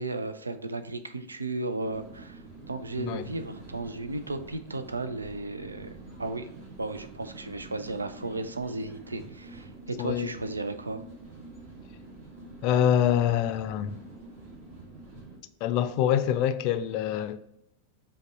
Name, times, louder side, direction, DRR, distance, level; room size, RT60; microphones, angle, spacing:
voice 1, 0.0-6.5 6.8-11.0, right 2 dB, 80° right, 0.4 m, -35 dB
sound 1, 1.8-15.4, right 2 dB, 45° right, 1.6 m, -47 dB
voice 2, 10.0-10.3 12.6-14.0 15.6-17.4, left 10 dB, 45° left, 0.3 m, -25 dB
5.2 x 2.3 x 4.0 m
figure-of-eight pair, 90°, 0 cm